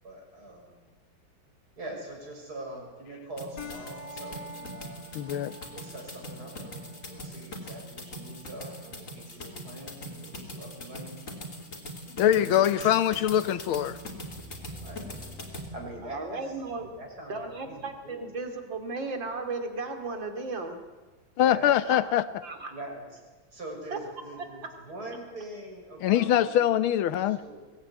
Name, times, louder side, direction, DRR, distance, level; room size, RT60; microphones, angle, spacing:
voice 1, 0.0-0.8 1.8-5.0 5.7-11.3 12.2-13.2 13.5-13.6 14.8-15.1 15.7-18.2 21.5-22.0 22.7-23.2 23.5-26.6 27.3-27.6, right 1 dB, 50° right, 0 dB, 6.9 m, -43 dB
sound 1, 3.4-15.7, equal, 40° left, 3.7 m, -41 dB
sound 2, 3.6-12.5, left 1 dB, 55° left, 2.7 m, -49 dB
voice 2, 5.1-5.6 12.2-14.0 21.4-22.3 26.0-27.4, left 11 dB, 85° left, 14 dB, 1.8 m, -23 dB
sound 3, 13.5-18.4, equal, 5° right, 1.7 m, -50 dB
voice 3, 16.1-16.8 17.3-20.8 22.4-22.7 23.9-24.0, right 3 dB, 65° right, 5 dB, 3.4 m, -35 dB
23.0 x 19.5 x 9.7 m, 1.3 s
omnidirectional pair, 2.2 m